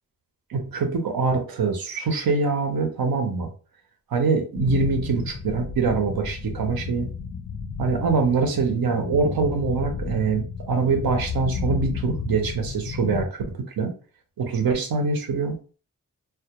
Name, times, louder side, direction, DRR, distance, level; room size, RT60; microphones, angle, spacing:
voice 1, 0.5-3.5 4.1-7.1 7.8-13.9 14.4-15.6, right 4 dB, 85° right, 4 dB, 0.7 m, -24 dB
sound 1, 4.5-13.2, left 5 dB, 70° left, 0.5 m, -32 dB
2.2 x 2.1 x 2.8 m, 0.37 s
cardioid pair, 60°, 35 cm